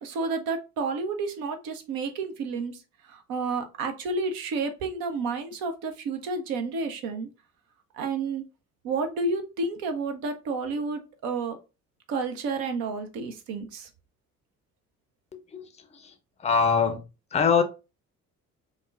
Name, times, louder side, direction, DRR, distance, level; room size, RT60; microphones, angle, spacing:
voice 1, 0.0-2.8 3.1-7.3 7.9-8.4 8.8-11.6 12.1-13.9, right 4 dB, 55° right, 0.7 m, -30 dB
voice 2, 16.4-17.0 17.3-17.6, left 6 dB, 15° left, 0.6 m, -23 dB
5.1 x 2.1 x 2.4 m
figure-of-eight pair, 40°, 41 cm